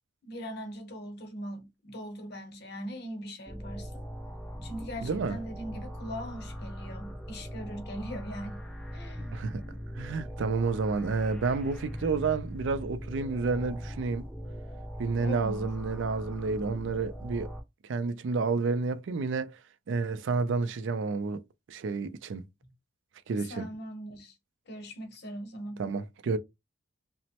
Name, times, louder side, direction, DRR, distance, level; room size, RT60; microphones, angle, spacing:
voice 1, 0.2-4.0 4.6-8.6 8.9-9.3 15.2-15.7 23.5-24.4 24.7-25.9, equal, 55° left, 0.8 m, -40 dB
sound 1, 3.5-17.6, equal, 5° left, 0.4 m, -40 dB
voice 2, 5.0-5.4 9.3-9.6 10.0-14.3 15.0-17.5 17.9-19.6 19.9-21.4 21.7-22.4 23.3-23.7 25.8-26.4, right 4 dB, 70° right, 0.4 m, -30 dB
3.0 x 2.0 x 2.8 m
head